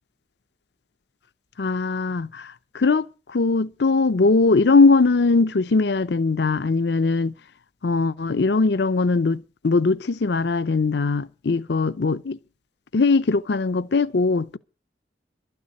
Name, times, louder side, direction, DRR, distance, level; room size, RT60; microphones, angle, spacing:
voice 1, 1.6-7.3 7.8-12.4 12.9-14.6, left 3 dB, 70° left, 0.6 m, -20 dB
13.0 x 6.8 x 9.5 m
head